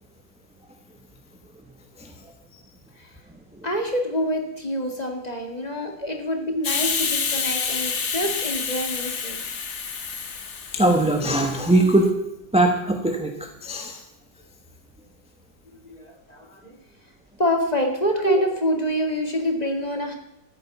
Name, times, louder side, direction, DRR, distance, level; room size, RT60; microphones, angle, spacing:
voice 1, 3.6-9.4 15.8-16.8 17.4-20.2, equal, 25° left, 2 dB, 2.1 m, -26 dB
Hiss, 6.6-12.0, left 5 dB, 45° left, 1.4 m, -28 dB
voice 2, 10.7-12.1 12.5-14.0, right 2 dB, 5° right, 3 dB, 0.9 m, -20 dB
14.0 x 9.0 x 7.1 m, 0.89 s
omnidirectional pair, 1.8 m